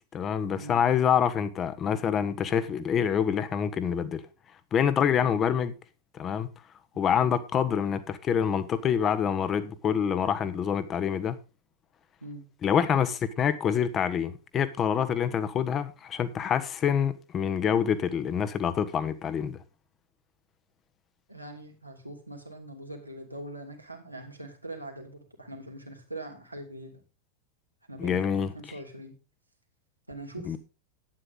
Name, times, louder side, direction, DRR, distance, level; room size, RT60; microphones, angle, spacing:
voice 1, 0.1-4.2 4.7-5.7 6.2-6.5 7.0-11.4 12.6-19.6 28.0-28.5 30.5-30.6, left 8 dB, 25° left, 1.3 m, -26 dB
voice 2, 21.3-27.0 27.9-29.1 30.1-30.6, right 1 dB, 85° right, 2.8 m, -42 dB
11.5 x 9.6 x 3.9 m
figure-of-eight pair, 90°, 0 cm